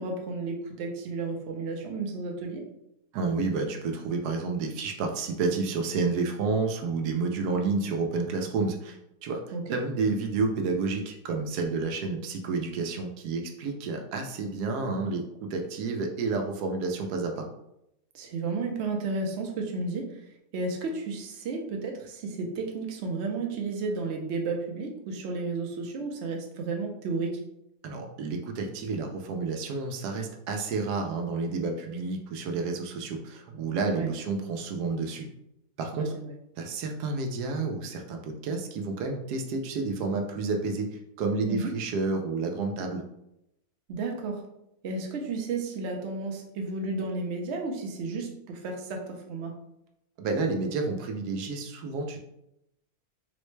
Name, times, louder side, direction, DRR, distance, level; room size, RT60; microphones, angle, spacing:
voice 1, 0.0-2.6 9.5-9.7 18.1-20.2 20.5-27.4 33.9-34.1 35.9-36.3 41.5-41.7 43.9-44.5 44.8-49.5, right 3 dB, 60° right, 2 dB, 0.7 m, -32 dB
voice 2, 3.1-9.4 9.7-17.5 27.8-35.3 35.8-36.1 36.6-43.0 50.2-52.2, right 4 dB, 85° right, 3 dB, 1.1 m, -30 dB
4.0 x 2.1 x 3.1 m, 0.82 s
omnidirectional pair, 1.7 m